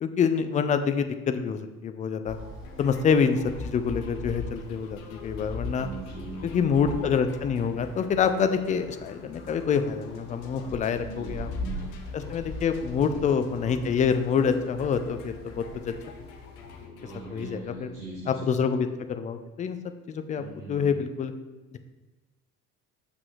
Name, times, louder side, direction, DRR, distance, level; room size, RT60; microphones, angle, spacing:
voice 1, 0.0-2.4 2.8-5.9 6.4-11.5 12.1-15.9 17.3-17.9 18.3-19.8 20.1-21.3 21.7-21.8, left 6 dB, 20° left, 9 dB, 0.3 m, -26 dB
sound 1, 2.2-16.8, left 2 dB, 50° left, 1.8 m, -40 dB
sound 2, 2.6-18.5, left 4 dB, 65° left, 1.0 m, -48 dB
voice 2, 5.8-6.9 11.0-11.9 13.0-13.2 17.0-18.5 20.3-21.0, right 2 dB, 75° right, -9 dB, 2.2 m, -41 dB
6.7 x 5.8 x 3.1 m, 1.2 s
figure-of-eight pair, 55°, 45 cm